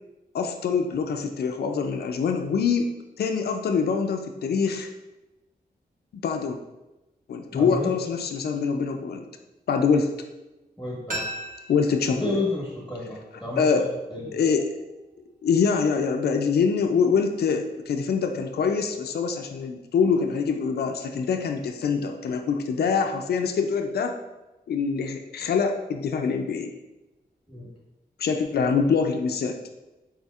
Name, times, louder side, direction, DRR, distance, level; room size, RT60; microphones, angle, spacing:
voice 1, 0.3-2.9 3.2-4.9 6.1-6.6 7.3-9.2 9.7-10.1 11.7-12.3 13.6-13.9 14.3-14.6 15.4-24.2 24.7-26.7 28.2-29.6, left 5 dB, 75° left, 5 dB, 0.4 m, -24 dB
voice 2, 7.5-7.9 10.8-11.3 12.2-13.7 14.1-14.3 27.5-27.7, left 2 dB, ahead, -6 dB, 1.0 m, -31 dB
sound 1, 11.1-13.9 14.2-14.3, right 1 dB, 55° right, 1.0 m, -38 dB
4.2 x 3.8 x 2.4 m, 1.0 s
wide cardioid pair, 100°, 17 cm